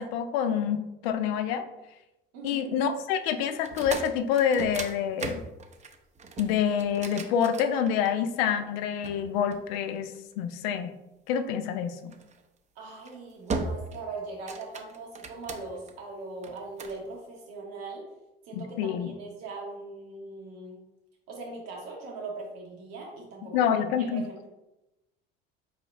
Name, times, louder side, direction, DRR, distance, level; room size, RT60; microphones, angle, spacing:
voice 1, 0.0-1.6 2.4-5.4 6.4-10.1 10.4-10.9 11.3-12.1 18.5-19.1 23.5-24.3, left 8 dB, 85° left, 8 dB, 0.5 m, -27 dB
voice 2, 2.3-2.7 12.8-18.1 18.4-20.8 21.3-23.7 24.0-24.5, right 3 dB, 85° right, -1 dB, 0.9 m, -40 dB
sound 1, 3.6-8.3 9.0-10.3 12.1-12.4 12.9-13.1 13.5-14.0 14.3-15.9 16.4-17.0, right 3 dB, 25° right, 0.4 m, -37 dB
4.2 x 2.7 x 3.0 m, 0.96 s
supercardioid pair, 75°, 29 cm